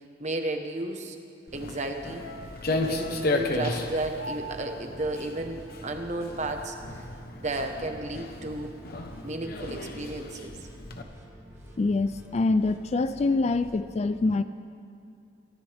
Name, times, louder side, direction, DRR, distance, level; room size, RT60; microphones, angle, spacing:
voice 1, 0.2-1.2 1.5-2.3 2.7-7.0 7.3-8.7 9.2-10.6, right 2 dB, 35° right, 4 dB, 1.2 m, -33 dB
Walk footsteps, 1.5-11.0, left 2 dB, 50° left, 1.1 m, -34 dB
sound 1, 1.5-13.7, equal, 15° right, 1.9 m, -48 dB
sound 2, 2.2-6.6 6.9-7.0, equal, 80° left, 1.7 m, -45 dB
voice 2, 11.8-14.4, left 3 dB, 35° left, 12 dB, 0.4 m, -25 dB
28.5 x 14.0 x 3.5 m, 2.5 s
head